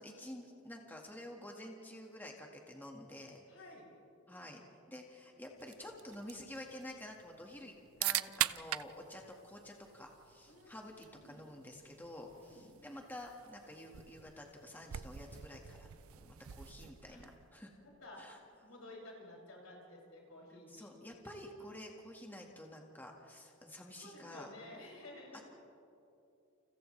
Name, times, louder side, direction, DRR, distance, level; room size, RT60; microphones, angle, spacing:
voice 1, 0.0-3.4 4.3-4.6 4.9-7.7 8.0-17.7 18.2-18.4 20.7-24.5, left 1 dB, 10° left, 0 dB, 1.7 m, -50 dB
voice 2, 3.5-3.9 10.5-11.4 12.4-12.7 17.1-17.2 17.8-18.3 18.6-20.9 24.0-25.5, left 1 dB, 85° left, -3 dB, 6.7 m, -53 dB
sound 1, 5.6-17.5, right 13 dB, 80° right, 0.5 m, -43 dB
29.5 x 29.0 x 3.3 m, 2.8 s
head